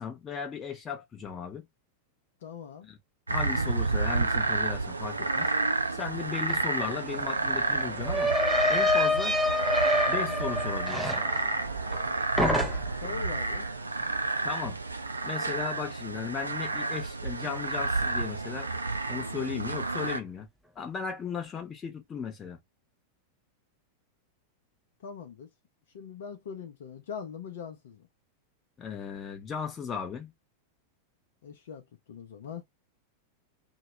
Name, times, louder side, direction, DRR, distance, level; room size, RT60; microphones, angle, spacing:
voice 1, 0.0-1.7 2.8-3.0 3.3-5.5 5.9-8.3 8.7-9.4 10.1-11.2 14.4-14.8 15.2-18.7 19.1-20.5 20.8-22.6 28.8-30.3, left 7 dB, 25° left, 0.9 m, -36 dB
voice 2, 2.4-2.9 13.0-13.7 25.0-25.5 25.9-28.0 31.4-31.8 32.1-32.6, left 6 dB, 60° left, 0.6 m, -41 dB
sound 1, 3.3-20.2, right 3 dB, 80° right, 0.4 m, -30 dB
sound 2, 6.5-6.6 6.8-12.1 12.4-13.1, left 1 dB, ahead, 0.5 m, -28 dB
2.8 x 2.2 x 3.0 m
figure-of-eight pair, 90°, 0 cm